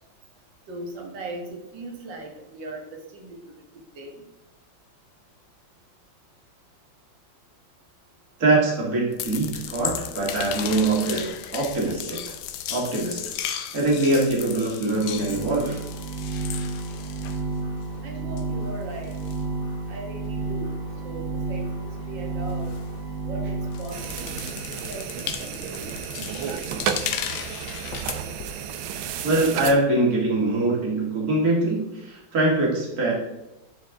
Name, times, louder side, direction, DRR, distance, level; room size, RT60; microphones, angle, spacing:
voice 1, 0.7-3.4 4.0-4.2 15.3-15.9 18.0-19.2 19.9-22.8 23.2-24.3 24.7-25.9, right 2 dB, 65° right, 1 dB, 2.1 m, -39 dB
voice 2, 8.4-12.3 12.7-13.2 13.5-15.8 29.2-33.1, right 2 dB, 45° right, -3 dB, 2.4 m, -23 dB
sound 1, 9.1-18.0 18.3-23.3 23.6-28.5, left 10 dB, 80° left, 1.3 m, -36 dB
sound 2, 14.9-24.6, right 3 dB, 30° right, 1.5 m, -31 dB
sound 3, 23.9-29.7, right 8 dB, 90° right, 1.5 m, -32 dB
11.0 x 4.6 x 3.6 m, 0.95 s
omnidirectional pair, 2.2 m